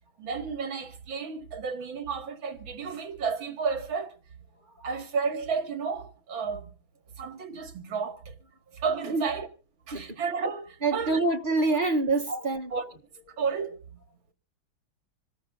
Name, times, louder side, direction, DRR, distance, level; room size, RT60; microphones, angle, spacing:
voice 1, 0.2-4.1 4.8-6.7 7.2-8.3 8.7-9.5 9.9-11.2 12.3-12.4 12.7-12.8 13.4-13.8, right 5 dB, 75° right, 2.8 m, -32 dB
voice 2, 10.8-12.7, right 3 dB, 35° right, 0.9 m, -27 dB
26.5 x 13.0 x 2.6 m
omnidirectional pair, 2.2 m